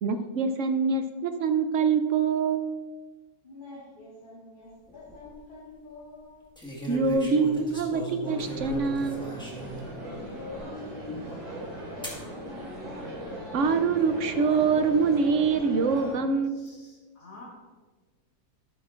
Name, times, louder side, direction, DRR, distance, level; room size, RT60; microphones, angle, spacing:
voice 1, 0.0-2.6 6.9-9.4 13.5-16.8, right 5 dB, 65° right, 8 dB, 0.8 m, -25 dB
voice 2, 3.4-6.4 10.1-12.8, left 3 dB, 35° left, -7 dB, 1.8 m, -45 dB
sound 1, 4.9-5.3 6.6-9.9 10.5-10.6 12.0-12.2 13.1-13.6, right 1 dB, 5° left, 1.5 m, -37 dB
sound 2, 8.2-16.1, equal, 85° right, 3.0 m, -39 dB
voice 3, 16.5-17.5, left 3 dB, 80° left, -6 dB, 2.7 m, -50 dB
12.0 x 9.2 x 2.5 m, 1.3 s
omnidirectional pair, 1.6 m